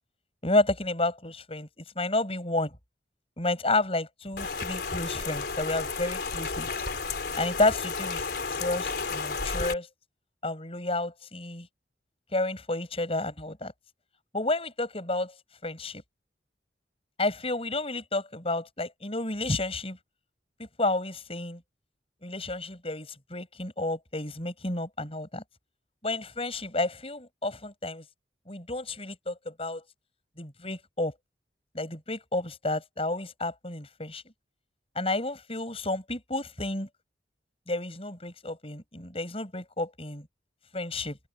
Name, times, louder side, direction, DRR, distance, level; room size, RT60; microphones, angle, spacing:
voice 1, 0.4-1.7 1.9-2.8 3.4-6.7 7.4-9.9 10.4-11.7 12.3-13.7 14.3-15.3 15.6-16.0 17.2-20.0 20.6-21.6 22.2-25.4 26.0-28.0 28.5-29.8 30.4-31.1 31.7-34.2 34.9-36.9 37.7-40.3 40.7-41.2, left 2 dB, 35° left, 8.0 m, -31 dB
Rain, 4.4-9.7, left 4 dB, 65° left, 4.0 m, -32 dB
open air
head